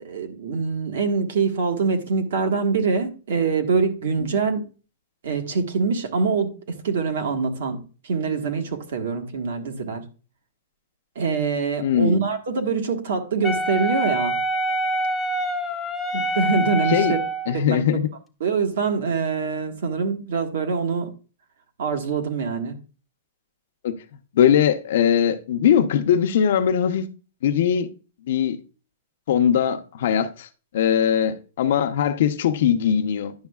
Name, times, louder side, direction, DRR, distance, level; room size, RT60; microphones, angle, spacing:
voice 1, 0.0-4.7 5.2-10.0 11.1-14.4 16.1-17.2 17.5-17.8 18.4-21.1 21.8-22.7, right 5 dB, 65° right, 1.4 m, -24 dB
voice 2, 11.8-12.2 16.9-17.2 17.5-18.1 23.8-23.9 24.3-27.1 27.4-27.9 28.3-28.6 29.3-30.5 30.7-33.3, left 9 dB, 55° left, 0.7 m, -20 dB
Wind instrument woodwind instrument, 13.4-17.6, right 1 dB, 5° left, 0.5 m, -25 dB
10.5 x 6.4 x 2.3 m
supercardioid pair, 175°, 0 cm